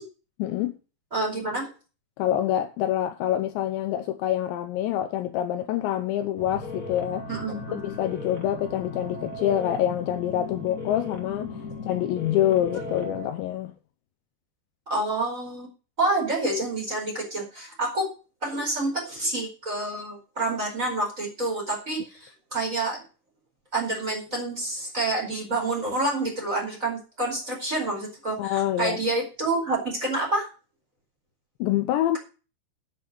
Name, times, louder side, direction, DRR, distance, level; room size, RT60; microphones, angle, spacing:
voice 1, 0.4-0.8 2.2-7.3 7.8-11.6 11.9-13.7 28.4-29.0 31.6-32.2, left 12 dB, 80° left, 2.8 m, -26 dB
voice 2, 1.1-1.7 7.3-7.8 14.9-15.7 16.0-18.1 18.4-23.0 23.7-30.5, right 2 dB, 15° right, 4.6 m, -28 dB
sound 1, 6.4-13.3, left 2 dB, 25° left, 2.4 m, -37 dB
9.1 x 6.9 x 7.9 m
omnidirectional pair, 5.5 m